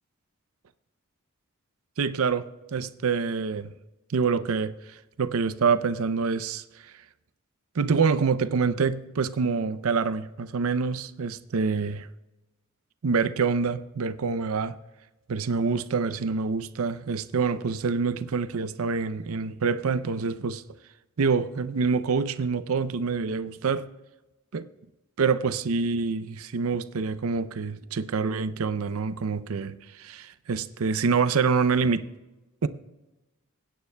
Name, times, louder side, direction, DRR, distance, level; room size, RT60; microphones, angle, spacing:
voice 1, 2.0-3.7 4.1-4.7 5.2-6.6 7.8-12.1 13.0-14.8 15.3-20.6 21.2-23.9 24.5-24.7 25.2-32.1 32.6-32.7, right 5 dB, 80° right, 0.5 m, -26 dB
21.0 x 9.5 x 2.2 m
head